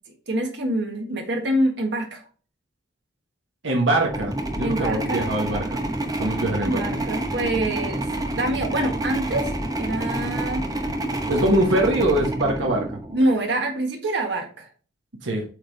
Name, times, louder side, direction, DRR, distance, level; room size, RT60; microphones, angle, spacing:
voice 1, 0.3-2.2 4.6-5.2 6.6-10.6 13.1-14.7, right 1 dB, 65° right, 3 dB, 1.6 m, -26 dB
voice 2, 3.6-5.8 6.2-6.8 11.3-13.0 15.2-15.4, right 1 dB, 90° right, 0 dB, 1.2 m, -23 dB
sound 1, 4.0-13.4, right 1 dB, 20° right, 0.9 m, -28 dB
8.0 x 3.5 x 4.0 m, 0.38 s
head